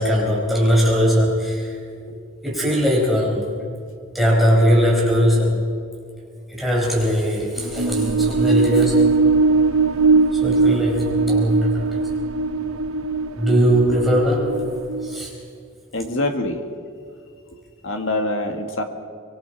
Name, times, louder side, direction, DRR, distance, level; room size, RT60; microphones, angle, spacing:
voice 1, 0.0-1.7 2.4-3.5 4.1-5.6 6.5-9.0 10.3-12.0 13.3-14.6 15.0-15.3, equal, ahead, -4 dB, 4.9 m, -19 dB
sound 1, 7.6-15.3, right 4 dB, 75° right, 0.9 m, -20 dB
voice 2, 15.9-16.7 17.5-18.8, left 2 dB, 60° left, 5 dB, 1.8 m, -26 dB
25.0 x 22.5 x 4.7 m, 2.3 s
head